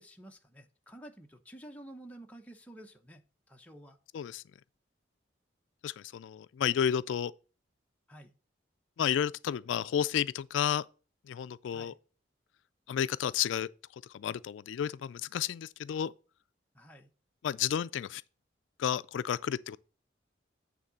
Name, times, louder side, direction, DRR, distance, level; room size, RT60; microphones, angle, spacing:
voice 1, 0.0-4.0 8.1-8.3 11.7-12.0 16.7-17.1, right 1 dB, 10° left, 0.8 m, -51 dB
voice 2, 5.8-7.3 9.0-10.9 11.3-11.9 12.9-13.7 14.1-16.1 17.4-18.2 18.8-19.8, left 9 dB, 85° left, 0.3 m, -31 dB
8.9 x 3.7 x 6.8 m
head